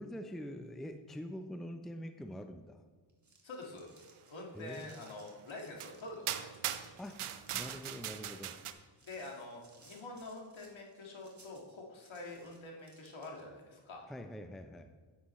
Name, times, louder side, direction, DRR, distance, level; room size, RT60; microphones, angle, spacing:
voice 1, 0.0-2.8 4.5-4.9 7.0-7.2 7.5-8.6 14.1-14.9, equal, ahead, 7 dB, 0.5 m, -44 dB
sound 1, 3.0-13.6, right 3 dB, 35° right, 2.0 m, -64 dB
voice 2, 3.4-3.9 4.3-6.5 9.1-14.1, left 2 dB, 65° left, 0 dB, 2.0 m, -46 dB
sound 2, 5.1-5.2 5.8-5.9 6.3-8.7, right 11 dB, 80° right, 0.7 m, -40 dB
9.3 x 8.8 x 3.2 m, 1.5 s
cardioid pair, 55°, 49 cm